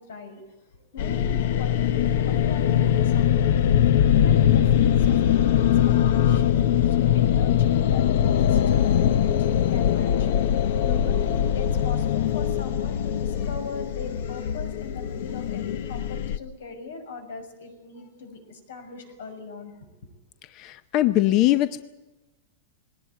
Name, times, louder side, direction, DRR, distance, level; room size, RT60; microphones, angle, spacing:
voice 1, 0.0-10.3 10.8-19.7, left 4 dB, 85° left, 7 dB, 6.5 m, -40 dB
sound 1, 1.0-16.4, left 10 dB, 60° left, 0.9 m, -22 dB
voice 2, 20.4-21.8, left 14 dB, 35° left, 13 dB, 0.7 m, -22 dB
20.5 x 18.5 x 9.3 m, 1.0 s
supercardioid pair, 165°, 0 cm